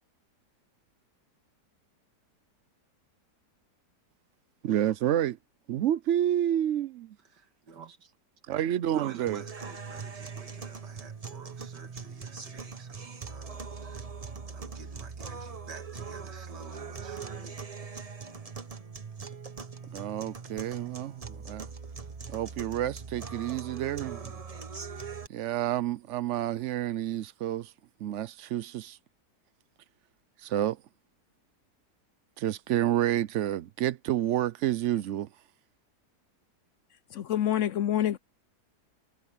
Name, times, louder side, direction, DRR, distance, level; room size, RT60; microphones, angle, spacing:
voice 1, 4.6-5.4 5.7-7.2 8.5-9.4 19.9-21.7 22.3-24.3 25.3-27.7 28.0-29.0 30.4-30.8 32.4-35.3, right 12 dB, 65° right, 0.8 m, -29 dB
voice 2, 7.3-8.1 8.9-14.1 14.5-17.6, right 5 dB, 90° right, 2.3 m, -50 dB
sound 1, 9.3-25.3, right 5 dB, 25° right, 1.0 m, -41 dB
voice 3, 37.1-38.2, left 11 dB, 75° left, 0.7 m, -27 dB
omnidirectional pair, 1.8 m